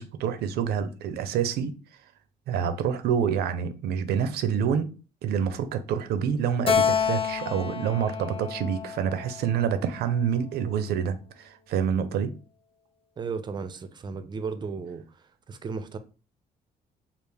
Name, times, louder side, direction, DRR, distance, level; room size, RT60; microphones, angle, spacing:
voice 1, 0.0-1.7 2.5-4.9 5.2-12.3, right 7 dB, 80° right, 0.5 m, -27 dB
Keyboard (musical), 6.7-10.1, left 7 dB, 35° left, 0.6 m, -28 dB
voice 2, 13.2-15.0 15.5-16.0, right 5 dB, 30° right, 0.4 m, -34 dB
3.4 x 2.4 x 3.4 m
cardioid pair, 120°, 16 cm